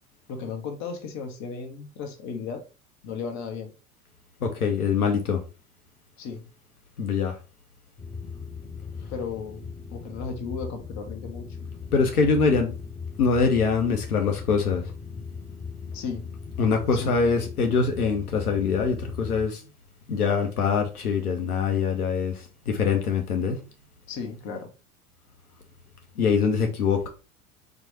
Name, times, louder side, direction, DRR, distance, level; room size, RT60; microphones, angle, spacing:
voice 1, 0.3-2.7 3.0-3.7 6.2-6.5 9.1-9.6 9.9-11.5 15.9-16.3 16.9-17.3 24.1-24.7, left 5 dB, 35° left, 1.1 m, -35 dB
voice 2, 4.4-5.4 7.0-7.4 11.9-12.7 13.2-14.8 16.6-19.6 20.1-23.6 26.2-27.1, left 5 dB, 70° left, 0.9 m, -23 dB
sound 1, 8.0-19.5, left 5 dB, 5° left, 0.4 m, -38 dB
4.5 x 2.5 x 4.0 m
figure-of-eight pair, 80°, 45 cm